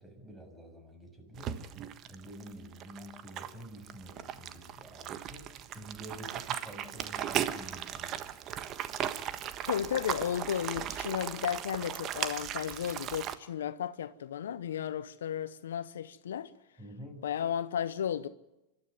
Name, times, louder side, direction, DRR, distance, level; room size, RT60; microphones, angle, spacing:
voice 1, 0.0-1.6 2.0-8.3 16.8-17.3, right 1 dB, 15° right, 7.0 m, -48 dB
sound 1, 1.3-13.3, right 10 dB, 40° right, 1.4 m, -37 dB
voice 2, 9.7-16.5 17.2-18.3, left 9 dB, 80° left, 0.9 m, -34 dB
26.0 x 13.0 x 9.7 m
hypercardioid pair, 105°, 0 cm